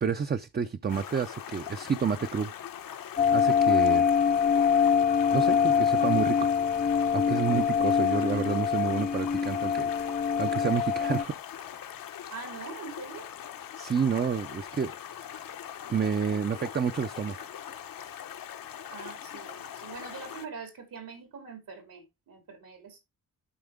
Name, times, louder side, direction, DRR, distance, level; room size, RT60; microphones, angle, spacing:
voice 1, 0.0-2.5 3.3-4.0 5.3-6.5 7.1-9.9 10.4-11.3 13.8-14.9 15.2-15.5 15.9-17.5, right 6 dB, 30° right, 0.5 m, -29 dB
Stream, 0.9-20.5, left 10 dB, 75° left, 0.9 m, -42 dB
sound 1, 3.2-11.2, left 7 dB, 25° left, 0.3 m, -24 dB
voice 2, 12.3-13.3 18.9-23.0, right 5 dB, 75° right, 2.8 m, -43 dB
11.5 x 4.3 x 3.6 m
cardioid pair, 105°, 34 cm